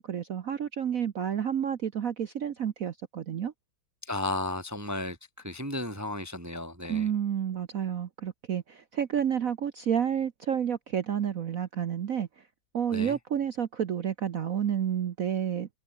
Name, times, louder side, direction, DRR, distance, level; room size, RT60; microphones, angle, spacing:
voice 1, 0.0-3.5 6.9-12.3 12.7-15.7, right 8 dB, 55° right, 1.1 m, -30 dB
voice 2, 4.0-7.1 12.9-13.2, left 2 dB, 10° right, 2.2 m, -34 dB
omnidirectional pair, 2.3 m